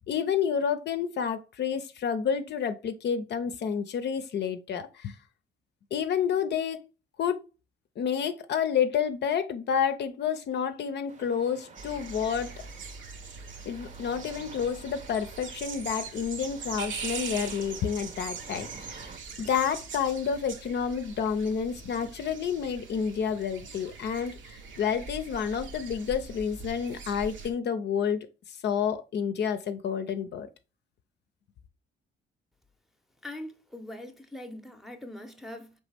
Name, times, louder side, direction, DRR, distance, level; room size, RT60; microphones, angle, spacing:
voice 1, 0.1-5.1 5.9-6.8 7.2-7.4 8.0-12.5 13.7-19.1 19.4-30.5, left 7 dB, 60° left, 0.6 m, -29 dB
sound 1, 11.1-19.2, right 4 dB, 35° right, 0.8 m, -51 dB
sound 2, 11.8-27.5, right 5 dB, 75° right, 0.9 m, -42 dB
voice 2, 33.2-35.8, left 1 dB, ahead, 0.7 m, -42 dB
4.1 x 3.2 x 3.3 m
cardioid pair, 90°, 20 cm